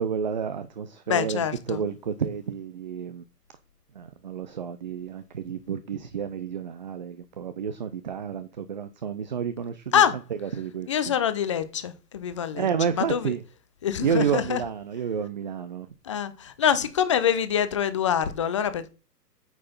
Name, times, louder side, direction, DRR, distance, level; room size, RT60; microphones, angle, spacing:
voice 1, 0.0-3.2 3.9-10.0 10.3-11.2 12.5-13.4 14.0-15.9, right 7 dB, 30° right, 0.5 m, -30 dB
voice 2, 1.1-1.8 9.9-10.2 10.9-12.7 13.0-13.3 13.8-14.6 16.0-18.9, left 9 dB, 20° left, 0.6 m, -25 dB
9.1 x 6.6 x 5.4 m
figure-of-eight pair, 135°, 48 cm